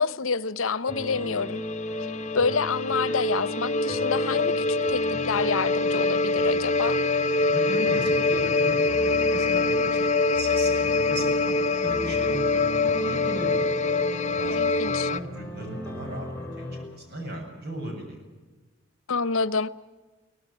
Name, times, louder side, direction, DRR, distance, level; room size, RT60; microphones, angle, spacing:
voice 1, 0.0-1.6 2.3-7.0 14.2-15.1 19.1-19.7, left 4 dB, 80° left, 0.9 m, -28 dB
sound 1, 0.9-15.2, left 3 dB, 35° left, 0.8 m, -25 dB
sound 2, 0.9-16.8, equal, 10° left, 4.9 m, -38 dB
voice 2, 7.4-13.8 14.4-16.6 16.9-18.2, right 1 dB, 50° right, 7.9 m, -37 dB
24.5 x 18.5 x 8.8 m
head